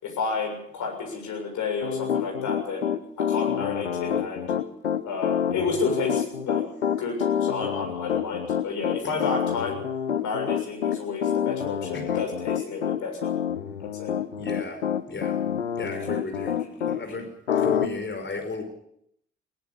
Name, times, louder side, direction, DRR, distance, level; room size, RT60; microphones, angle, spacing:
voice 1, 0.0-2.9 3.2-4.4 5.0-6.6 7.0-9.8 10.2-13.3 13.8-14.1 16.0-16.1 16.6-16.7, left 4 dB, 60° left, 1 dB, 7.0 m, -31 dB
Piano, 1.8-17.0 17.5-17.9, left 8 dB, 85° left, 0.9 m, -27 dB
voice 2, 14.4-14.8 15.1-15.4 15.8-16.6 16.9-18.6, left 3 dB, 35° left, 5 dB, 5.1 m, -34 dB
21.5 x 18.5 x 7.1 m, 0.73 s
figure-of-eight pair, 40°, 33 cm